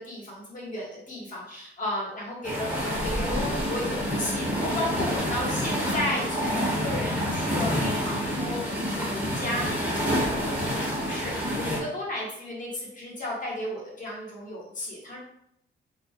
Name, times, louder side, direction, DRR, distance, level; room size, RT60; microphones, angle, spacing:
voice 1, 0.0-15.2, left 1 dB, 40° left, -4 dB, 1.1 m, -34 dB
sound 1, 2.4-11.8, equal, 5° right, 0.8 m, -28 dB
2.3 x 2.1 x 2.6 m, 0.73 s
cardioid pair, 90°, 20 cm